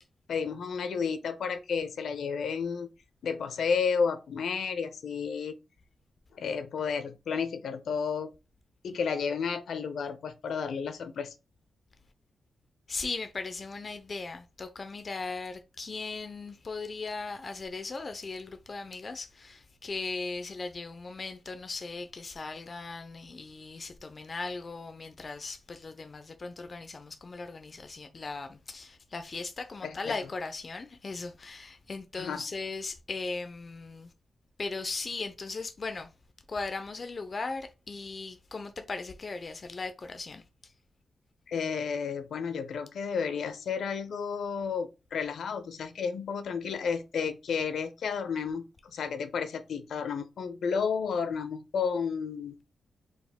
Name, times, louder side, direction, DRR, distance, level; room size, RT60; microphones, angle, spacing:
voice 1, 0.3-2.9 3.2-5.5 6.3-8.3 8.8-11.3 29.8-30.2 32.2-32.4 41.5-48.6 48.9-52.6, left 6 dB, 70° left, 0.6 m, -32 dB
voice 2, 12.9-34.1 34.6-36.1 36.5-40.7, left 3 dB, 30° left, 0.4 m, -38 dB
4.1 x 2.5 x 3.5 m
wide cardioid pair, 175°, 0 cm